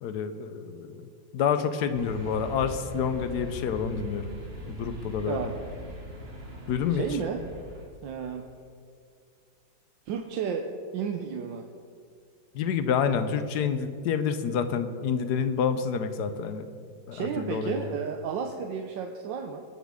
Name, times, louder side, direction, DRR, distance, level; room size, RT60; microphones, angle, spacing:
voice 1, 0.0-4.3 4.7-5.5 6.7-7.1 12.5-16.7 17.1-17.9, left 7 dB, 70° left, 10 dB, 1.1 m, -28 dB
sound 1, 1.9-7.9, equal, 35° right, 1.7 m, -41 dB
voice 2, 6.9-7.4 8.0-8.5 10.1-10.6 10.9-11.6 17.1-19.6, right 7 dB, 80° right, 3 dB, 1.4 m, -32 dB
20.5 x 7.4 x 3.6 m, 2.2 s
omnidirectional pair, 2.1 m